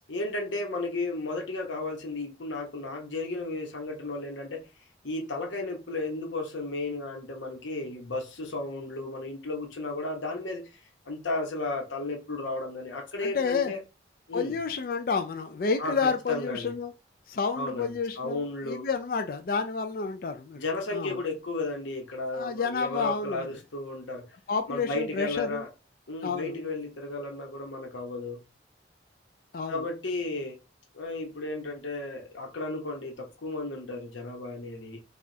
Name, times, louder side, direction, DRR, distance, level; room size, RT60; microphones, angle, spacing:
voice 1, 0.1-4.6 5.0-10.8 11.1-13.8 14.3-14.6 15.8-16.7 17.5-18.9 20.6-24.3 24.7-25.7 26.1-28.4 29.7-30.6 30.9-35.0, left 2 dB, 85° left, 1.0 m, -34 dB
voice 2, 13.2-13.7 14.3-16.9 17.3-20.6 20.9-21.2 22.3-23.5 24.5-25.6 26.2-26.6 29.5-29.8, left 5 dB, 50° left, 0.3 m, -30 dB
4.9 x 2.4 x 2.7 m
head